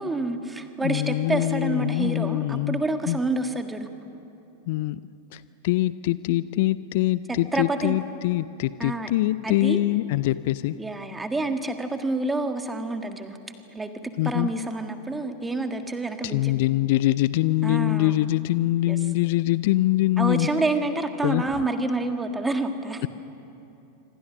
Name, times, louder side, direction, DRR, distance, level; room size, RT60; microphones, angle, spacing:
voice 1, 0.0-3.9 7.3-8.0 8.8-9.1 9.4-9.8 10.8-13.4 13.7-16.6 17.6-18.1 18.9-19.0 20.2-23.0, right 2 dB, 10° right, 7 dB, 1.7 m, -28 dB
voice 2, 0.8-3.2 4.7-5.0 5.3-10.8 14.2-14.5 16.2-20.5 21.2-21.5 23.0-23.1, left 16 dB, 50° left, 17 dB, 0.5 m, -24 dB
26.0 x 26.0 x 6.2 m, 2.8 s
figure-of-eight pair, 90°, 0 cm